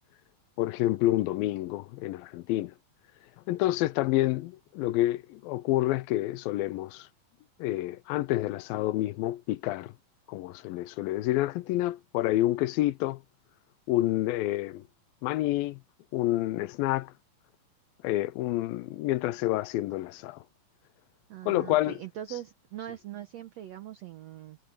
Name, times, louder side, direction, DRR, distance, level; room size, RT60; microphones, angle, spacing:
voice 1, 0.6-2.7 3.5-7.1 7.6-9.9 10.3-13.2 13.9-14.8 15.2-15.8 16.1-17.1 18.0-20.4 21.5-22.0, left 16 dB, 85° left, 2.5 m, -28 dB
voice 2, 21.3-24.6, right 12 dB, 65° right, 1.7 m, -41 dB
omnidirectional pair, 4.1 m